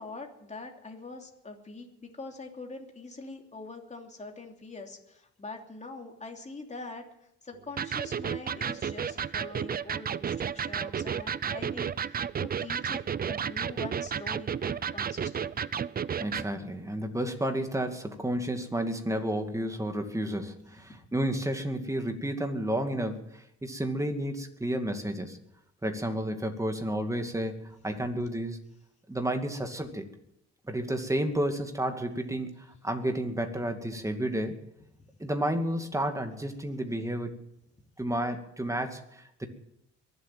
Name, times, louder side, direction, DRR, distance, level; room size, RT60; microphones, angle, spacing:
voice 1, 0.0-13.0 13.3-15.7 20.8-21.0 28.0-28.1 35.0-35.3, left 3 dB, 25° left, 2 dB, 2.9 m, -44 dB
Electric guitar, 7.8-16.5, right 7 dB, 30° right, 0.5 m, -32 dB
voice 2, 16.2-25.4 25.8-27.6 27.8-28.6 29.1-30.1 30.7-32.5 32.8-34.6 35.2-37.4 38.0-39.5, right 1 dB, 10° right, 5 dB, 2.4 m, -31 dB
22.5 x 8.0 x 7.6 m, 0.79 s
cardioid pair, 90°, 30 cm